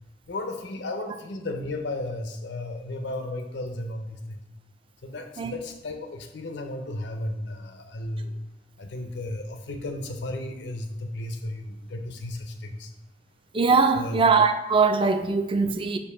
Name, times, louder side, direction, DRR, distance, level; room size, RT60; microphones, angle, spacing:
voice 1, 0.3-4.4 5.0-8.3 8.8-12.9 13.9-14.2, left 1 dB, 75° left, 0.6 m, -34 dB
voice 2, 13.5-16.0, right 4 dB, 30° right, 0.4 m, -21 dB
6.8 x 2.5 x 5.5 m
head